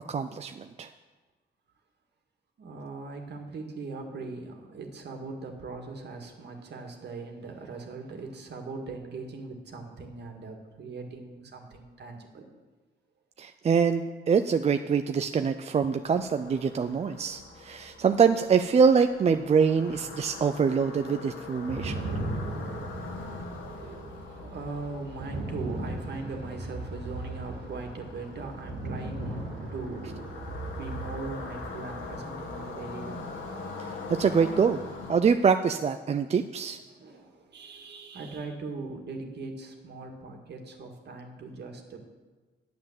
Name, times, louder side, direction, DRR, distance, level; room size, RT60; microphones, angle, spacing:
voice 1, 0.1-0.9 13.4-22.1 34.2-34.8 35.1-36.8, right 6 dB, 35° right, 8 dB, 0.4 m, -24 dB
voice 2, 2.6-12.5 22.9-23.0 23.5-30.3 30.7-33.3 36.9-42.0, right 3 dB, 60° right, 3 dB, 1.9 m, -40 dB
sound 1, 16.0-35.2, left 3 dB, 70° left, 1.7 m, -43 dB
sound 2, 21.6-33.0, right 2 dB, 90° right, 2.0 m, -38 dB
9.6 x 7.5 x 7.3 m, 1.3 s
cardioid pair, 90°, 20 cm